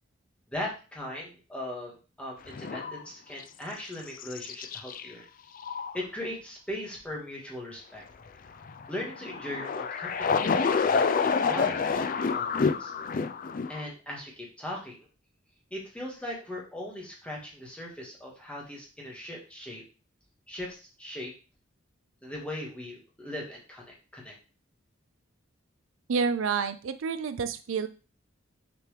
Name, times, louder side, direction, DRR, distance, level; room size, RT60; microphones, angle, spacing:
voice 1, 0.5-5.3 5.9-8.0 8.9-12.9 13.7-15.1 15.7-19.8 20.5-21.3 22.2-24.3, left 1 dB, 5° left, -3 dB, 1.7 m, -39 dB
sound 1, 2.5-3.0 3.4-3.5 4.2-5.1 5.6-6.0 8.6-13.8, left 5 dB, 40° left, 0.4 m, -28 dB
voice 2, 26.1-27.9, right 5 dB, 70° right, 11 dB, 0.4 m, -29 dB
6.8 x 4.5 x 3.3 m, 0.35 s
head